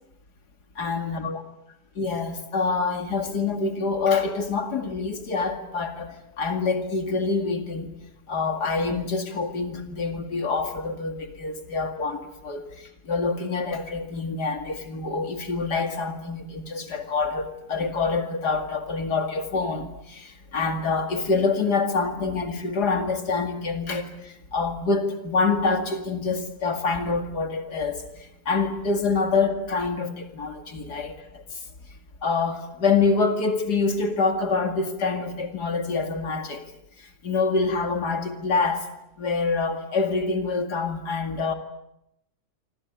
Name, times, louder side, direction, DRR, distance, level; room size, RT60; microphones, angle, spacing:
voice 1, 0.8-1.4 2.0-7.9 8.3-31.6 32.2-36.6 37.0-38.9 39.2-41.5, left 4 dB, 80° left, 6 dB, 2.8 m, -26 dB
27.5 x 25.5 x 8.2 m, 0.83 s
omnidirectional pair, 1.7 m